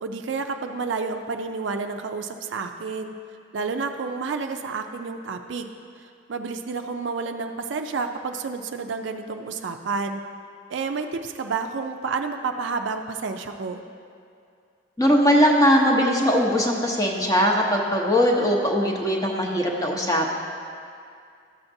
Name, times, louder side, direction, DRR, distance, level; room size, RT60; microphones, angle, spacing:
voice 1, 0.0-3.1 3.5-5.7 6.3-10.2 10.7-13.8, right 4 dB, 65° right, 5 dB, 0.4 m, -30 dB
voice 2, 15.0-20.3, equal, 15° left, -1 dB, 0.8 m, -20 dB
13.0 x 7.1 x 2.7 m, 2.4 s
head